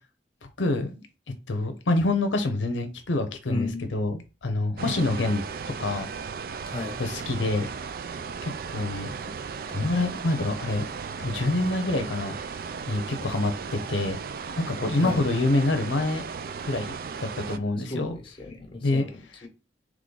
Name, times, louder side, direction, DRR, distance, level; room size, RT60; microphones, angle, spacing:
voice 1, 0.6-1.1 1.5-5.4 5.8-6.1 7.0-7.7 8.4-9.3 9.7-10.8 11.2-12.4 12.9-14.2 14.6-16.2 16.6-18.2 18.8-19.0 19.3-19.5, left 2 dB, 85° left, 0.7 m, -26 dB
voice 2, 3.5-3.9 6.7-7.0 15.0-15.2 17.8-19.5, left 2 dB, 25° left, 1.2 m, -34 dB
sound 1, 4.8-17.6, right 5 dB, 50° right, 0.3 m, -36 dB
3.7 x 3.1 x 3.8 m
head